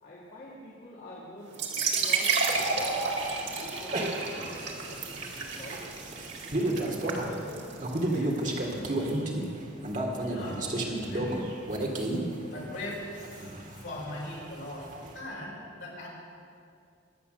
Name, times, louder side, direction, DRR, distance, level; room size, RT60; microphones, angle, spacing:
voice 1, 0.0-2.9 3.6-5.9 6.8-7.7 8.1-8.8, equal, 45° left, -5 dB, 2.3 m, -45 dB
sound 1, 1.5-9.1, right 4 dB, 60° right, 2.2 m, -32 dB
sound 2, 2.5-15.1, right 1 dB, 40° right, 1.9 m, -33 dB
voice 2, 10.2-11.5 12.5-13.3 13.8-16.1, left 1 dB, 60° left, -5 dB, 5.1 m, -40 dB
22.5 x 8.5 x 6.5 m, 2.4 s
head